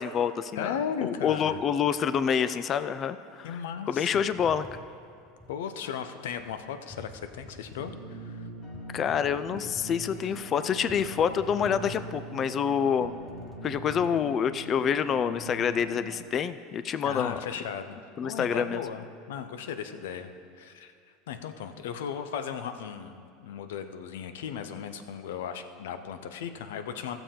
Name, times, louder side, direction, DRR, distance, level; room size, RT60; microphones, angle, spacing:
voice 1, 0.0-0.7 1.0-3.6 3.9-4.7 8.9-13.1 13.6-17.4 18.2-18.8, left 7 dB, 35° left, 13 dB, 0.4 m, -27 dB
voice 2, 0.6-1.6 3.4-4.2 5.5-8.5 17.0-20.9 21.3-27.2, left 7 dB, 85° left, 9 dB, 0.6 m, -36 dB
sound 1, 4.3-5.6 6.4-6.6 6.9-8.1 8.7-10.4 10.9-12.3 12.7-12.8 13.0-14.2, left 1 dB, ahead, 1.0 m, -49 dB
sound 2, 7.8-16.2, right 1 dB, 60° left, 2.9 m, -42 dB
15.5 x 6.9 x 3.7 m, 2.4 s
supercardioid pair, 115°, 0 cm